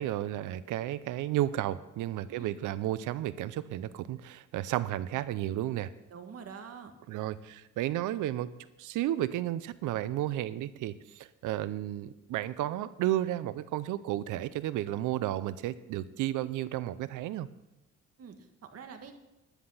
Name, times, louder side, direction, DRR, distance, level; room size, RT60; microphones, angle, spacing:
voice 1, 0.0-5.9 7.1-8.5 8.8-17.5, right 13 dB, 90° right, 16 dB, 0.7 m, -32 dB
voice 2, 2.3-2.6 6.1-6.9 18.2-19.1, right 6 dB, 55° right, 6 dB, 1.6 m, -46 dB
10.5 x 10.0 x 5.6 m, 0.94 s
cardioid pair, 90°, 30 cm